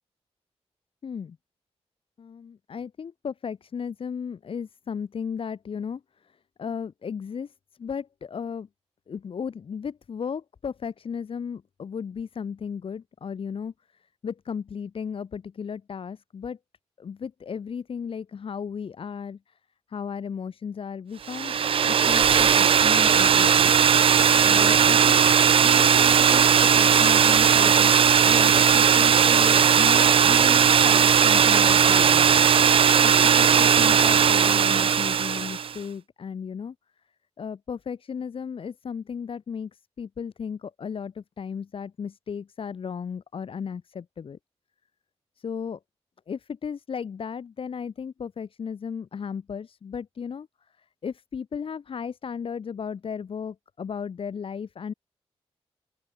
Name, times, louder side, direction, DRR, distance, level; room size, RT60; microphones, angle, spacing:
voice 1, 1.0-1.4 2.2-6.0 6.6-7.5 7.8-8.7 9.1-13.7 14.2-16.6 17.0-19.4 19.9-21.5 21.9-23.7 24.4-25.3 25.6-32.5 33.0-36.7 37.4-44.4 45.4-45.8 46.3-50.5 51.0-54.9, left 6 dB, 55° left, 1.2 m, -35 dB
sound 1, 21.3-35.7, right 7 dB, 55° right, 0.5 m, -18 dB
open air
wide cardioid pair, 175°, 11 cm